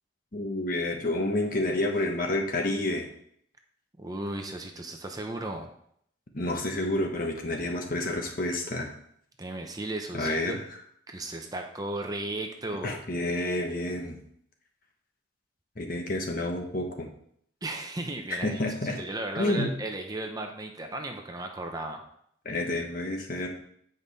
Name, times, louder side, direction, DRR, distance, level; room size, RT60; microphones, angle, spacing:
voice 1, 0.3-3.1 6.3-8.9 10.1-10.6 12.8-14.2 15.8-17.1 18.4-19.0 19.3-19.7 22.4-23.5, left 1 dB, 50° left, 2 dB, 1.2 m, -29 dB
voice 2, 4.0-5.7 9.4-10.6 11.1-13.0 17.6-22.0, right 2 dB, 20° right, 3 dB, 0.8 m, -35 dB
8.2 x 5.3 x 4.1 m, 0.68 s
head